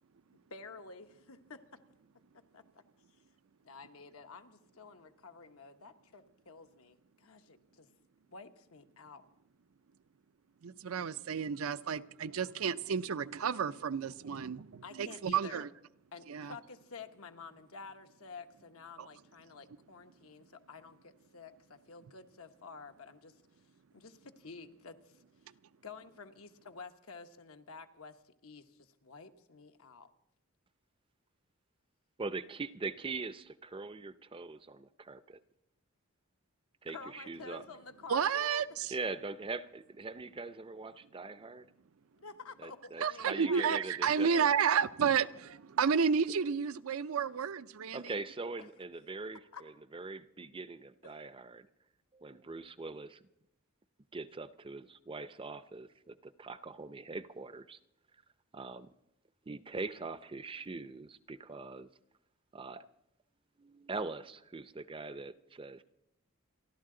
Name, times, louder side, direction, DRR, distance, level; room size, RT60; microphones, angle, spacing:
voice 1, 0.5-1.8 2.5-2.6 3.6-7.9 8.3-9.3 14.8-15.7 16.1-23.3 23.9-25.2 25.8-30.1 36.9-38.6 42.1-43.8 49.5-49.6 51.0-51.1, left 4 dB, 80° left, 1.1 m, -50 dB
voice 2, 10.6-15.7 16.3-16.6 19.0-19.1 25.5-25.6 38.1-38.9 43.0-48.1, right 7 dB, 75° right, 0.5 m, -31 dB
voice 3, 32.2-35.4 36.8-37.6 38.9-41.7 42.6-44.6 47.9-51.7 52.1-53.2 54.1-57.8 58.5-58.9 59.5-61.9 62.5-62.9 63.6-65.8, right 3 dB, 25° right, 0.5 m, -42 dB
29.0 x 12.0 x 3.8 m
head